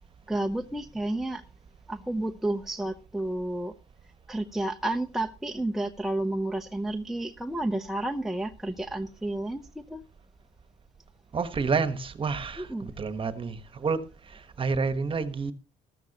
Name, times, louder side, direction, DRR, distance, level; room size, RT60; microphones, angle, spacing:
voice 1, 0.3-1.4 1.9-3.7 4.3-10.0 12.6-12.9, right 1 dB, ahead, 0.8 m, -31 dB
voice 2, 11.3-14.0 14.3-15.5, right 5 dB, 30° right, 1.3 m, -29 dB
14.0 x 13.0 x 2.9 m
cardioid pair, 110°, 17 cm